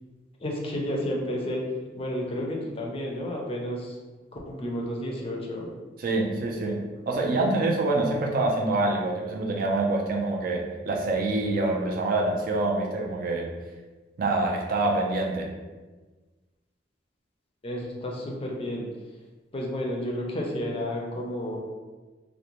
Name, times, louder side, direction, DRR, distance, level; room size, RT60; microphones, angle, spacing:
voice 1, 0.4-4.0 4.3-5.7 17.6-18.9 19.5-21.6, left 1 dB, 30° left, -1 dB, 0.4 m, -31 dB
voice 2, 6.0-13.5 14.2-15.5, right 2 dB, 55° right, 0 dB, 0.4 m, -26 dB
2.5 x 2.1 x 2.9 m, 1.3 s
head